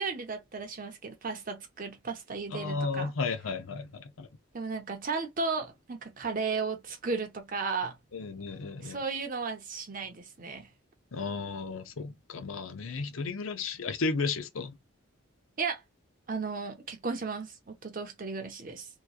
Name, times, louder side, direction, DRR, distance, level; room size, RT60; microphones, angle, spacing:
voice 1, 0.0-3.1 4.5-8.0 8.8-10.7 15.6-15.8 16.3-18.9, right 4 dB, 45° right, 0.8 m, -35 dB
voice 2, 2.5-4.3 8.1-9.0 11.1-14.7, left 4 dB, 80° left, 0.6 m, -34 dB
2.9 x 2.3 x 2.4 m
head